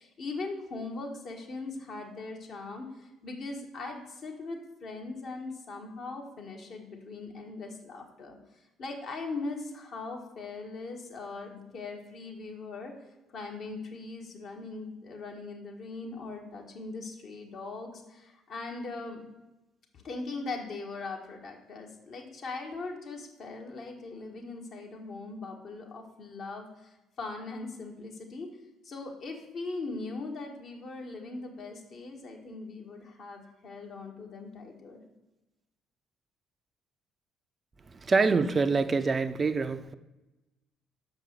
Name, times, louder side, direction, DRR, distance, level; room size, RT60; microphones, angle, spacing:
voice 1, 0.0-8.4 8.8-12.9 13.3-19.2 19.9-28.5 28.8-35.0, left 3 dB, 55° left, 1 dB, 1.6 m, -40 dB
voice 2, 37.9-39.9, right 4 dB, 30° right, 11 dB, 0.5 m, -26 dB
6.3 x 5.2 x 6.6 m, 1.0 s
figure-of-eight pair, 50°, 0 cm